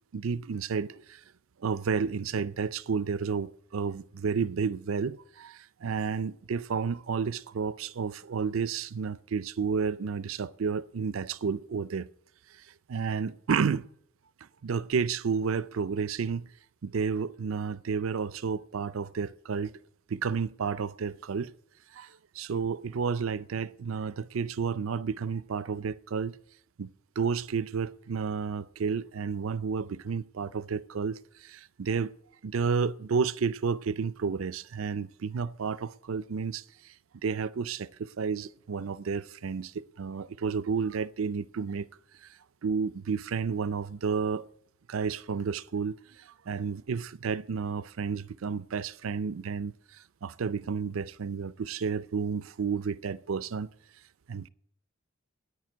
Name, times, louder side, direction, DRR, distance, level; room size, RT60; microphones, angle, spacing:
voice 1, 0.1-1.2 1.6-12.1 12.9-13.9 14.6-16.5 16.8-19.7 20.1-21.5 21.9-26.4 26.8-26.9 27.2-32.1 32.4-36.6 37.2-41.9 42.2-42.3 42.6-44.4 44.9-53.7 54.3-54.5, right 5 dB, 80° right, 0.5 m, -31 dB
9.7 x 9.5 x 7.6 m
head